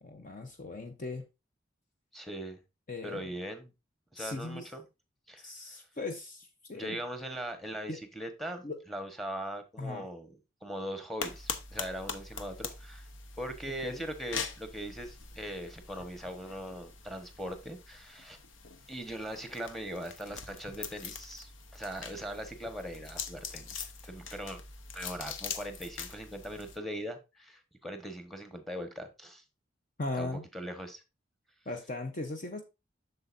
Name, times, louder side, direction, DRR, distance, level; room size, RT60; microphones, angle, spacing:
voice 1, 0.0-1.2 2.9-3.3 4.2-4.7 5.4-7.0 7.9-8.0 8.6-8.8 9.8-10.1 13.8-14.0 30.0-30.4 31.7-32.6, left 2 dB, 45° left, 0.8 m, -38 dB
voice 2, 2.1-2.6 3.0-3.7 4.1-4.8 5.3-5.8 6.7-10.3 10.6-13.1 13.4-18.4 18.9-24.6 24.9-29.4 30.2-31.0, equal, ahead, 1.2 m, -40 dB
sound 1, 11.2-26.8, left 6 dB, 80° left, 0.9 m, -43 dB
7.8 x 6.8 x 2.6 m
head